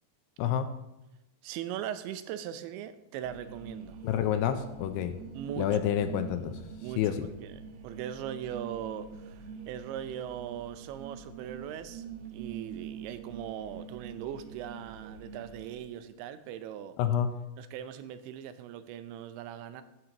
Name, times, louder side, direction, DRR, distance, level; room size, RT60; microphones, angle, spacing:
voice 1, 1.4-4.0 5.3-5.8 6.8-17.0 17.6-19.8, right 10 dB, 90° right, 11 dB, 3.0 m, -40 dB
sound 1, 3.2-15.8, right 6 dB, 75° right, 2.9 m, -45 dB
voice 2, 4.0-5.1 5.6-6.5 7.0-7.3 17.0-17.3, left 9 dB, 80° left, 8 dB, 2.5 m, -28 dB
15.5 x 9.4 x 3.0 m, 0.94 s
omnidirectional pair, 5.1 m